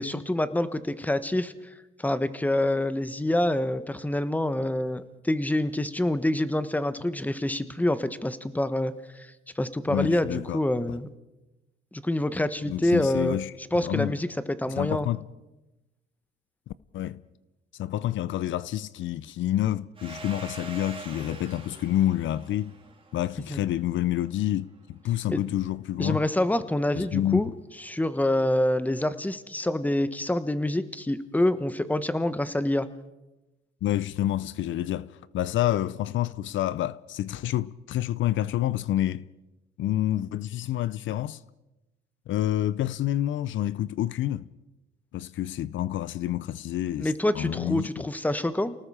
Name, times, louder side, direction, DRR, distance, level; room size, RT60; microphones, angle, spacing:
voice 1, 0.0-1.5 2.0-9.3 9.6-11.1 11.9-13.4 13.7-15.1 23.5-23.6 25.3-25.4 26.0-27.5 27.8-32.9 47.0-48.8, left 1 dB, 10° left, 1.3 m, -26 dB
voice 2, 9.9-10.6 10.9-11.0 12.6-13.5 13.8-14.2 14.8-15.3 16.7-17.2 17.7-22.7 23.1-26.2 27.0-27.4 33.8-39.3 39.8-41.4 42.3-44.5 45.1-48.0, left 13 dB, 75° left, 0.6 m, -28 dB
Domestic sounds home sounds, 20.0-24.4, right 3 dB, 25° right, 3.6 m, -44 dB
29.0 x 19.0 x 5.0 m
cardioid pair, 90°, 20 cm